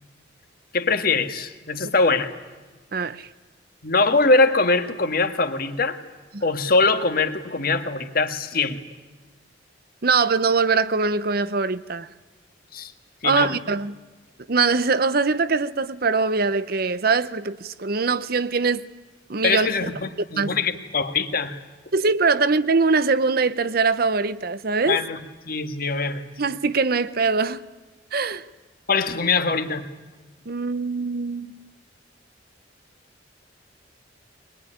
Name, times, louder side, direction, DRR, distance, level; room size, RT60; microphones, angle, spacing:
voice 1, 0.7-2.3 3.8-6.0 6.4-8.8 12.7-12.9 13.2-13.6 19.4-21.6 24.9-26.3 28.9-29.9, left 3 dB, 50° left, 1.7 m, -22 dB
voice 2, 2.9-3.3 6.3-6.4 10.0-12.1 13.2-13.9 14.5-18.9 19.3-19.9 20.4-20.5 21.9-25.0 26.4-27.6 28.1-28.5 30.5-31.6, right 4 dB, 50° right, 0.8 m, -22 dB
22.0 x 22.0 x 10.0 m
head